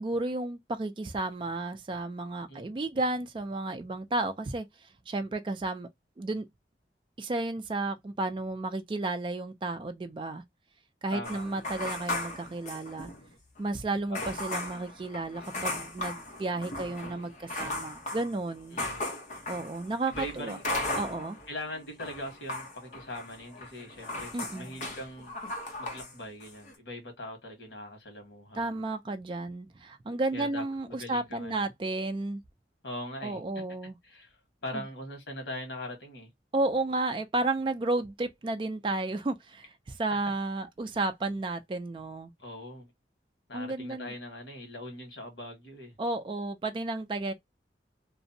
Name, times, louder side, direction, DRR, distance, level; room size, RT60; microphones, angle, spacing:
voice 1, 0.0-4.7 5.1-5.9 6.2-6.4 7.2-10.4 11.0-13.1 13.6-18.8 19.5-20.6 20.9-21.4 24.3-24.7 28.6-32.4 33.2-33.9 34.7-34.8 36.5-42.3 43.5-44.1 46.0-47.3, right 2 dB, 30° right, 0.3 m, -32 dB
voice 2, 11.1-11.6 14.1-14.3 18.7-19.0 20.1-20.6 21.5-25.3 25.8-28.8 30.3-31.7 32.8-33.6 34.0-36.3 42.4-42.9 43.5-46.0, left 1 dB, 85° left, 1.2 m, -41 dB
sound 1, 11.2-13.3 13.6-13.7 14.1-21.5 21.8-26.1 26.4-26.7, left 2 dB, 45° left, 0.7 m, -37 dB
2.5 x 2.0 x 2.6 m
head